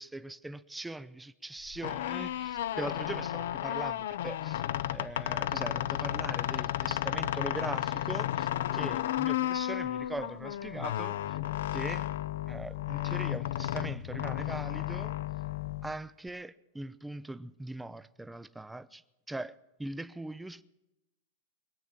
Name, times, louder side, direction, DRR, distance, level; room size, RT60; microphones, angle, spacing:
voice 1, 0.0-4.6 4.9-11.4 11.7-12.1 12.5-15.1 15.8-19.0 19.3-20.6, right 2 dB, 5° right, 0.4 m, -41 dB
sound 1, 1.7-16.3, left 13 dB, 75° left, 0.4 m, -33 dB
23.0 x 8.7 x 5.8 m
supercardioid pair, 145°, 0 cm